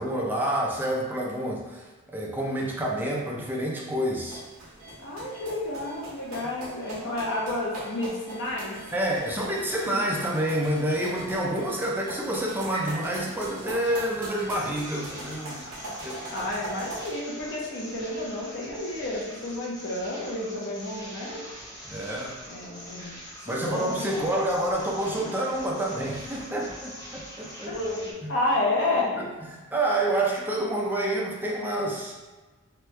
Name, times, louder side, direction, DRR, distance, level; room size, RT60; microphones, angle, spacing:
voice 1, 0.0-4.4 8.9-15.7 16.0-16.2 21.8-22.4 23.5-27.7 28.2-28.3 29.2-32.1, right 1 dB, 10° right, -3 dB, 0.4 m, -28 dB
sound 1, 4.3-17.1, right 1 dB, 70° right, 1.0 m, -41 dB
voice 2, 5.0-8.8 9.9-10.0 15.6-15.9 16.3-21.4 22.5-24.4 27.7-29.2, left 2 dB, 55° left, -3 dB, 0.7 m, -31 dB
sound 2, 12.7-16.7 17.2-17.3, right 1 dB, 85° left, 1.2 m, -45 dB
sound 3, 14.5-28.1, equal, 15° left, 0.8 m, -44 dB
3.0 x 2.3 x 3.1 m, 1.3 s
head